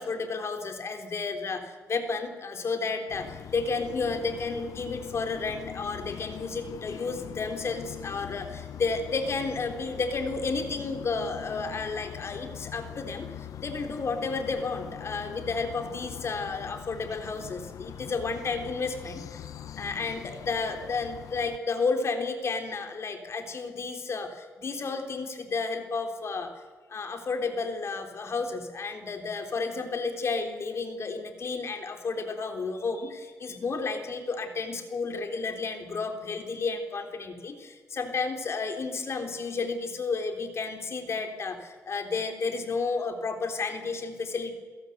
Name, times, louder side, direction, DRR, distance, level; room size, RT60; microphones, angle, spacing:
voice 1, 0.0-19.4 19.8-26.5 26.9-44.5, left 4 dB, 50° left, 6 dB, 3.5 m, -32 dB
sound 1, 3.1-21.6, left 10 dB, 85° left, 0.9 m, -42 dB
28.0 x 17.0 x 8.0 m, 1.5 s
cardioid pair, 100°, 6 cm